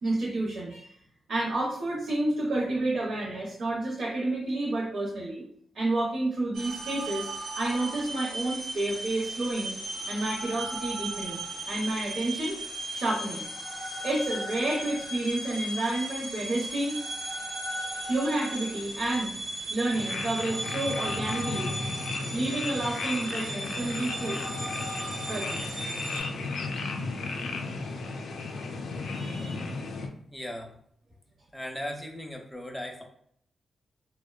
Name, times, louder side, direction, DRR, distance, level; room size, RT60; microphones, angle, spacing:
voice 1, 0.0-1.0 1.3-5.5 5.7-7.3 7.5-9.8 10.1-12.6 12.9-13.5 14.0-17.0 18.0-19.3 19.7-21.7 22.3-24.4 25.0-25.6 29.0-29.6, right 2 dB, 65° right, -4 dB, 0.6 m, -30 dB
sound 1, 6.5-26.2, right 1 dB, 90° right, 0.9 m, -36 dB
sound 2, 19.9-30.1, left 3 dB, 85° left, 0.3 m, -34 dB
voice 2, 30.3-30.8 31.5-33.0, left 1 dB, 5° left, 2 dB, 0.4 m, -37 dB
2.6 x 2.1 x 2.3 m, 0.65 s
wide cardioid pair, 110°, 0 cm